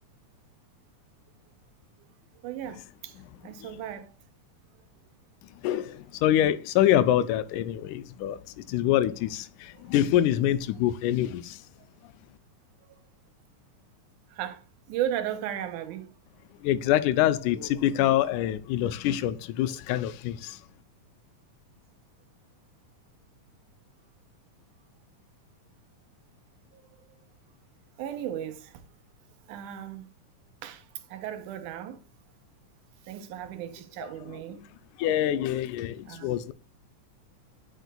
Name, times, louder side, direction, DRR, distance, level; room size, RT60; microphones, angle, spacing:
voice 1, 2.4-4.1 12.8-13.0 14.3-16.1 26.7-26.8 28.0-28.9 29.5-30.1 30.6-32.0 33.0-34.6 36.1-36.3, right 11 dB, 85° right, 2.3 m, -36 dB
voice 2, 5.6-11.6 16.6-20.6 34.3-34.4 35.0-36.5, left 12 dB, 85° left, 2.0 m, -25 dB
8.9 x 6.6 x 2.3 m
omnidirectional pair, 3.5 m